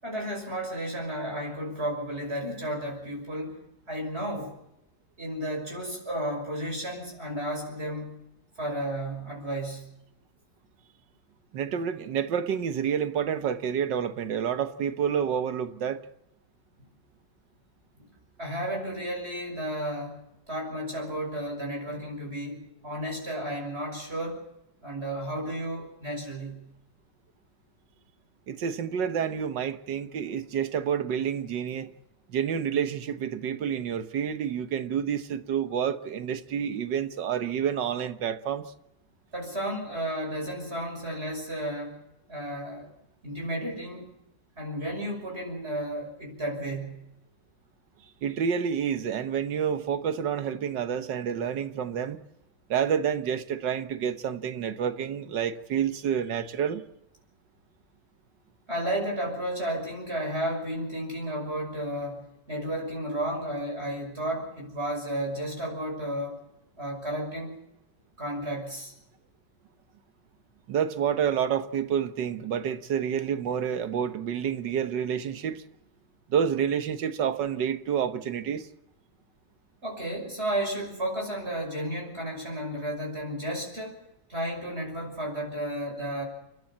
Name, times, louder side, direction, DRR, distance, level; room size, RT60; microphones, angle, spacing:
voice 1, 0.0-3.6 3.9-4.6 5.2-8.2 8.6-9.9 16.8-16.9 18.0-18.1 18.4-24.5 24.8-26.6 39.3-42.0 42.3-42.9 43.2-44.1 44.6-47.0 58.7-66.4 66.8-67.6 68.2-68.9 79.8-84.0 84.3-86.2, right 1 dB, 35° right, 6.3 m, -33 dB
voice 2, 11.5-16.0 28.5-31.9 32.3-38.7 48.2-52.2 52.7-56.8 70.7-75.6 76.3-78.7, right 8 dB, 85° right, 1.8 m, -29 dB
29.5 x 12.0 x 7.4 m
omnidirectional pair, 1.9 m